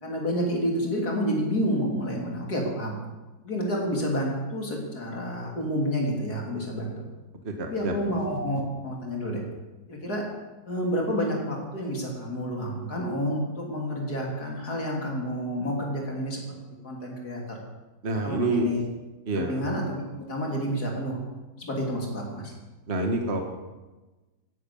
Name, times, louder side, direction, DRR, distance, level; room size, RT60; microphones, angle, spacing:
voice 1, 0.0-2.9 3.4-7.0 7.7-9.4 9.9-10.2 10.6-16.4 16.8-17.6 18.2-18.8 19.3-20.0 20.3-21.2 21.6-22.5, equal, 70° left, -1 dB, 3.9 m, -29 dB
voice 2, 7.4-7.9 18.0-18.7 19.3-19.6 22.9-23.4, right 2 dB, 40° right, 4 dB, 1.7 m, -27 dB
16.0 x 11.0 x 7.1 m, 1.2 s
omnidirectional pair, 1.7 m